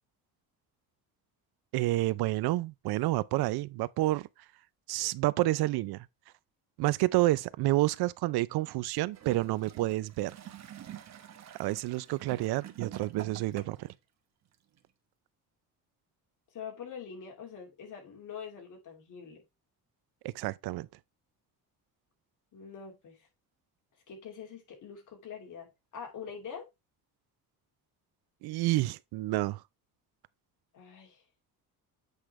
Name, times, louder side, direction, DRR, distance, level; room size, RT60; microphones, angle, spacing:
voice 1, 1.7-4.3 4.9-6.1 6.8-10.3 11.6-13.9 20.2-20.9 28.4-29.6, right 17 dB, 80° right, 0.5 m, -29 dB
Gurgling / Toilet flush, 9.1-13.9 14.8-14.9, right 11 dB, 45° right, 1.0 m, -47 dB
voice 2, 16.5-19.4 22.5-23.3 24.1-26.7 30.7-31.2, left 7 dB, 55° left, 2.7 m, -44 dB
8.0 x 5.1 x 3.1 m
cardioid pair, 145°, 38 cm